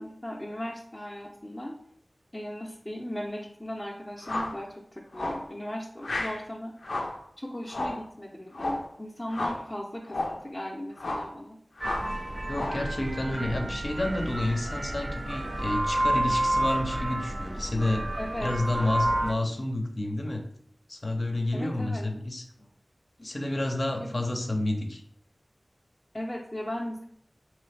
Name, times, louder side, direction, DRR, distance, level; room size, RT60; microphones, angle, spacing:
voice 1, 0.0-1.7 2.3-7.0 7.4-11.6 18.2-18.5 21.5-22.1 24.0-24.1 26.1-27.1, left 1 dB, 15° left, -5 dB, 0.6 m, -37 dB
sound 1, 4.2-4.6 5.1-5.5 6.0-6.4 6.8-7.2 7.7-8.1 8.5-8.9 9.3-9.7 10.1-10.4 11.0-11.3 11.8-12.1 12.5-12.9, left 2 dB, 90° left, 0.5 m, -32 dB
sound 2, 11.8-19.3, right 1 dB, 30° right, 0.3 m, -30 dB
voice 2, 12.5-18.1 18.4-20.4 20.9-22.7 23.2-25.0, left 1 dB, 50° left, 3 dB, 0.7 m, -30 dB
4.2 x 3.1 x 3.3 m, 0.66 s
wide cardioid pair, 65°, 0 cm